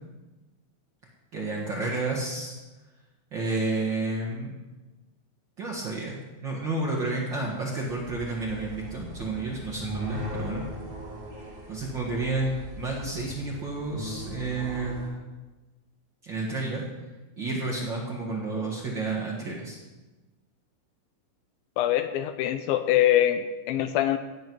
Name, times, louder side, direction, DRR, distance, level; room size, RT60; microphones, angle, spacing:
voice 1, 1.3-2.5 3.3-4.5 5.6-10.6 11.7-15.3 16.2-16.8 17.4-19.8, right 2 dB, 45° right, -4 dB, 1.6 m, -31 dB
sound 1, 7.9-15.1, left 1 dB, 30° right, 1.0 m, -39 dB
voice 2, 21.8-24.2, left 12 dB, 80° left, 9 dB, 2.3 m, -24 dB
17.0 x 7.9 x 4.7 m, 1.2 s
omnidirectional pair, 4.4 m